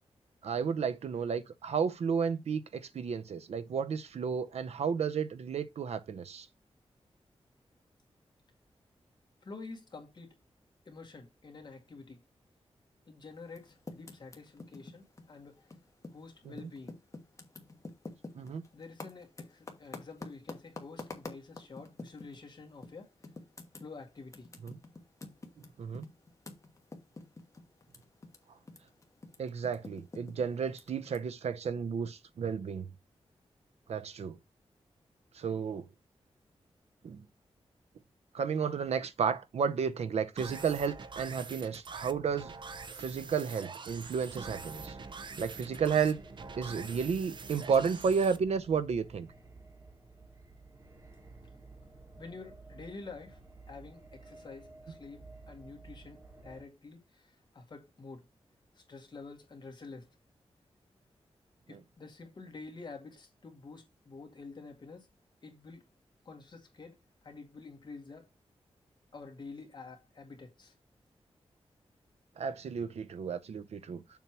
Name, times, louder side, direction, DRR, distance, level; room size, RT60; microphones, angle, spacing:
voice 1, 0.4-6.5 18.3-18.6 24.6-24.8 25.6-26.1 29.4-32.9 33.9-34.4 35.3-35.8 37.0-37.2 38.3-42.5 43.0-45.0 45.4-46.2 46.6-49.3 61.7-61.8 72.4-74.2, right 6 dB, 85° right, 0.7 m, -32 dB
voice 2, 9.4-10.3 10.9-12.2 13.1-15.8 16.1-16.9 18.7-23.1 23.8-24.5 52.2-53.4 53.7-58.3 58.8-60.1 61.7-65.1 65.4-65.8 66.3-67.0 67.2-68.3 69.1-70.7, left 3 dB, 45° left, 2.1 m, -48 dB
Typing, 13.4-16.2 16.5-22.4 22.8-22.9 23.2-28.4 28.6-31.2, left 2 dB, 30° left, 1.3 m, -47 dB
sound 1, 40.4-48.4, right 4 dB, 50° right, 0.7 m, -45 dB
sound 2, 44.3-56.6, right 3 dB, 30° right, 1.4 m, -53 dB
7.1 x 3.0 x 5.8 m
wide cardioid pair, 145°, 11 cm